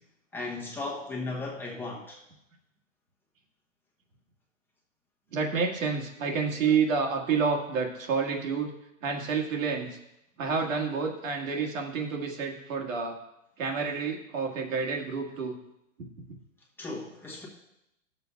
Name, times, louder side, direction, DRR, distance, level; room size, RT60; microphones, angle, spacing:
voice 1, 0.3-2.2 16.8-17.5, left 2 dB, 5° left, -3 dB, 0.9 m, -36 dB
voice 2, 5.3-8.7 9.0-9.9 10.4-13.2 13.6-15.5, right 5 dB, 75° right, 1 dB, 1.8 m, -29 dB
14.5 x 6.9 x 2.3 m, 0.84 s
hypercardioid pair, 155°, 40 cm